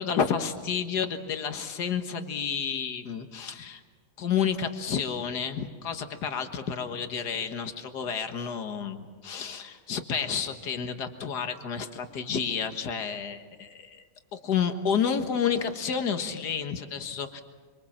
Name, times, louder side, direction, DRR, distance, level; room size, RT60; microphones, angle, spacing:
voice 1, 0.0-3.8 4.2-14.0 14.3-17.4, left 7 dB, 75° left, 7 dB, 2.0 m, -30 dB
26.0 x 25.0 x 7.3 m, 1.4 s
omnidirectional pair, 1.8 m